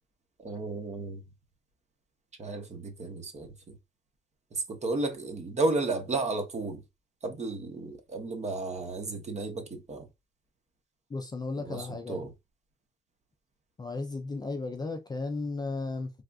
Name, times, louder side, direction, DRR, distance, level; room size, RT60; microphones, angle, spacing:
voice 1, 0.4-1.2 2.4-3.8 4.5-6.8 7.2-10.1 11.6-12.3, right 3 dB, 35° right, 0.8 m, -33 dB
voice 2, 11.1-12.3 13.8-16.1, left 3 dB, 20° left, 0.4 m, -34 dB
3.4 x 2.4 x 2.3 m
cardioid pair, 110°, 20 cm